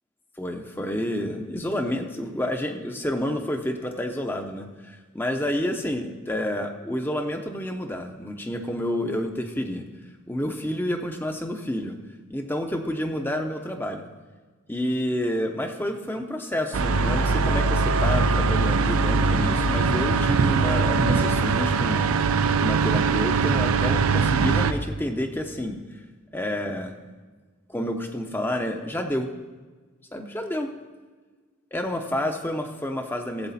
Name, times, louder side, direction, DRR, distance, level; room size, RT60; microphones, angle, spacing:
voice 1, 0.4-9.8 10.3-12.0 12.3-14.0 14.7-22.3 22.6-25.8 26.3-26.9 27.7-29.3 30.1-30.7 31.7-33.5, left 1 dB, 10° left, 5 dB, 0.6 m, -29 dB
sound 1, 16.7-24.7, right 4 dB, 85° right, 0.5 m, -21 dB
15.5 x 7.8 x 4.2 m, 1.4 s
head